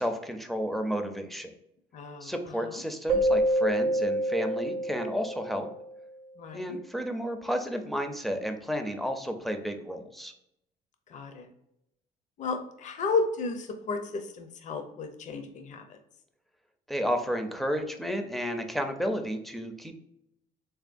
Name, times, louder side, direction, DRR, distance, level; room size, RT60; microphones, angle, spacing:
voice 1, 0.0-1.5 2.2-5.7 6.5-10.3 16.9-20.0, equal, ahead, 5 dB, 0.5 m, -32 dB
voice 2, 1.9-2.3 2.7-2.8 6.4-6.8 11.1-11.5 12.4-16.0, left 4 dB, 45° left, 6 dB, 0.6 m, -33 dB
Keyboard (musical), 3.1-5.8, right 1 dB, 85° right, 0.5 m, -27 dB
3.5 x 3.4 x 2.5 m, 0.81 s
cardioid pair, 110°, 17 cm